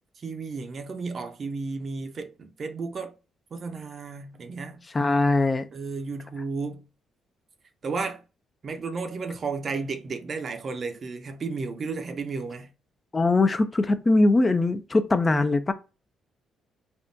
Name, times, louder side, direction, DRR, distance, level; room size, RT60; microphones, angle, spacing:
voice 1, 0.2-3.2 3.5-4.8 5.7-6.8 7.8-8.2 8.6-12.7, right 4 dB, 45° right, 0.5 m, -33 dB
voice 2, 4.9-5.7 13.1-15.7, left 2 dB, 25° left, 0.3 m, -21 dB
3.6 x 2.2 x 2.5 m
cardioid pair, 90°, 0 cm